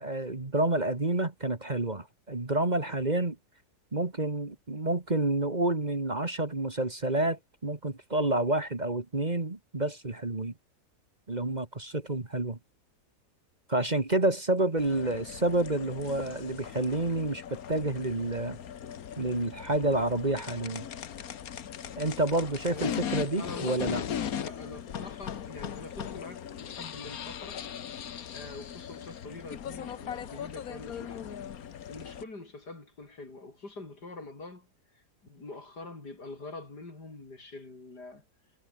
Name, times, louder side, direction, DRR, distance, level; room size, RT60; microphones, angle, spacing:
voice 1, 0.0-3.4 3.9-10.5 11.3-12.6 13.7-18.6 19.2-20.9 22.0-24.0, right 2 dB, 25° right, 2.0 m, -29 dB
sound 1, 14.8-32.2, left 9 dB, 65° left, 1.5 m, -39 dB
voice 2, 22.7-27.6 28.3-31.4 31.9-34.7 35.2-38.2, left 3 dB, 85° left, 5.8 m, -45 dB
omnidirectional pair, 1.7 m